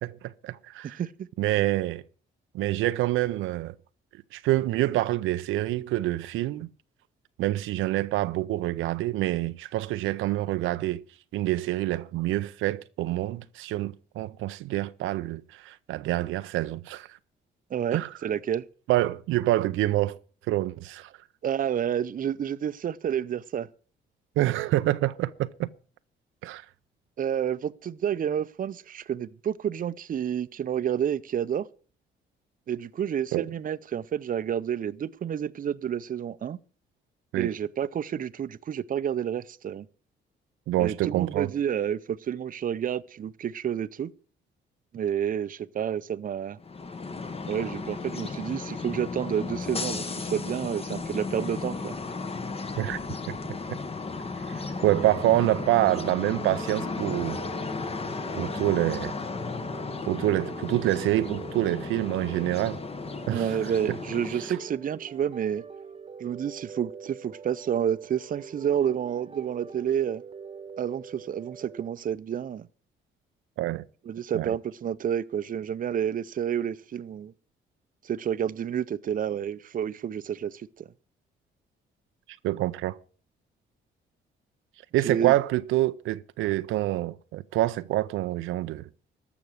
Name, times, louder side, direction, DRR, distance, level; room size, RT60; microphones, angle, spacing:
voice 1, 0.0-1.0 1.4-2.0 2.5-3.7 4.3-6.7 7.4-11.0 11.3-17.1 17.9-18.1 18.9-20.2 20.5-21.1 24.4-25.7 26.4-26.6 33.3-33.5 37.3-37.5 40.7-41.5 52.8-53.0 53.7-53.8 54.8-57.4 58.3-59.2 60.1-62.8 63.3-63.7 73.6-73.8 74.3-74.5 82.4-83.0 84.9-88.9, right 16 dB, 90° right, 0.5 m, -26 dB
voice 2, 0.8-1.3 17.7-18.6 21.4-23.7 27.2-31.7 32.7-36.6 37.3-39.9 40.8-44.1 44.9-46.6 47.5-52.0 63.3-65.6 66.2-70.2 70.8-72.7 74.1-77.3 78.0-80.9 85.0-85.3, right 9 dB, 45° right, 0.6 m, -29 dB
sound 1, 46.6-64.7, left 4 dB, 30° left, 1.1 m, -35 dB
sound 2, 54.8-71.9, right 5 dB, 25° right, 1.1 m, -44 dB
14.0 x 6.1 x 7.9 m
cardioid pair, 90°, 20 cm